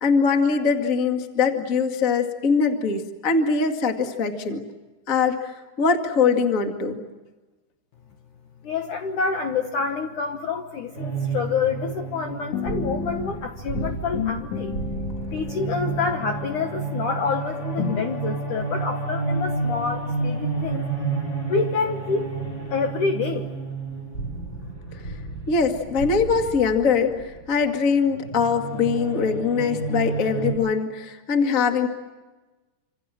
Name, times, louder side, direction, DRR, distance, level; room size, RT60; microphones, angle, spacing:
voice 1, 0.0-4.6 5.1-7.0 25.5-31.9, left 5 dB, 45° left, 5 dB, 1.0 m, -22 dB
voice 2, 8.6-14.8 15.3-20.9 21.5-22.3 22.7-23.5, left 5 dB, 65° left, 5 dB, 2.0 m, -27 dB
sound 1, 10.9-30.5, right 3 dB, 15° left, 6.5 m, -31 dB
sound 2, 12.5-13.4 13.8-17.3 17.8-18.0, left 6 dB, 90° left, 5.2 m, -32 dB
27.5 x 26.5 x 7.6 m, 1.2 s
omnidirectional pair, 5.3 m